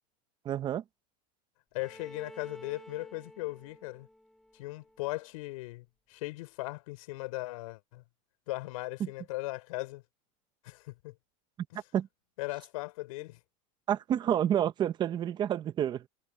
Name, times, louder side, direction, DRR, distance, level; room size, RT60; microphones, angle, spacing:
voice 1, 0.4-0.8 11.9-12.1 13.9-16.1, right 10 dB, 25° right, 0.9 m, -29 dB
voice 2, 1.7-4.1 4.5-8.0 8.5-10.0 10.6-11.1 11.7-11.8 12.4-13.4 14.3-14.4, left 21 dB, 70° left, 5.0 m, -38 dB
Bowed string instrument, 1.8-5.6, left 1 dB, 5° left, 7.1 m, -52 dB
supercardioid pair, 155°, 18 cm